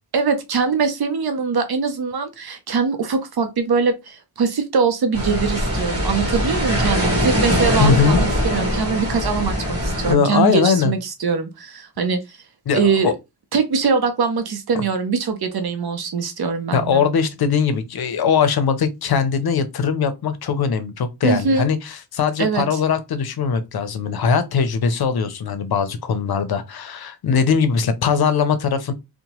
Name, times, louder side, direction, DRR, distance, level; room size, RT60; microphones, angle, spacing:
voice 1, 0.1-12.4 12.7-13.1 13.5-17.0 21.2-21.7 22.4-22.8, right 5 dB, 65° right, 0.6 m, -22 dB
sound 1, 5.1-10.1, equal, 35° right, 1.3 m, -21 dB
voice 2, 7.8-8.2 10.0-10.9 12.7-13.1 16.7-28.9, left 6 dB, 60° left, 0.6 m, -20 dB
2.8 x 2.1 x 2.9 m
wide cardioid pair, 90°, 41 cm